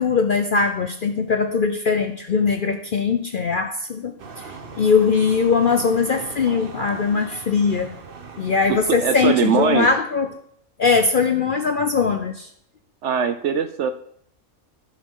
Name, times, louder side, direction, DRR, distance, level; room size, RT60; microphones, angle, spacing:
voice 1, 0.0-7.9 8.4-10.3 10.8-12.5, left 5 dB, 55° left, 6 dB, 0.6 m, -21 dB
sound 1, 4.2-9.9, right 4 dB, 45° right, 1.1 m, -39 dB
voice 2, 8.7-9.9 13.0-13.9, right 7 dB, 65° right, 10 dB, 0.8 m, -21 dB
15.0 x 6.3 x 3.7 m, 0.67 s
omnidirectional pair, 1.5 m